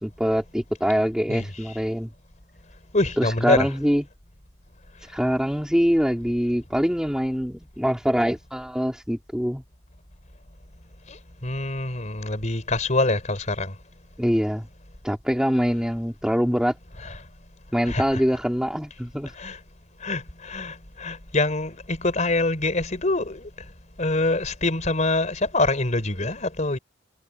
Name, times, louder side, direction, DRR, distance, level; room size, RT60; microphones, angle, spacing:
voice 1, 0.0-2.1 3.2-4.0 5.1-9.6 14.2-14.7 15.0-16.7 17.7-19.3, equal, 5° right, 3.2 m, -24 dB
voice 2, 2.9-3.7 11.1-11.2 11.4-13.7 17.0-17.2 17.9-18.2 19.4-19.6 20.0-23.5 24.0-26.8, left 2 dB, 40° left, 4.0 m, -25 dB
head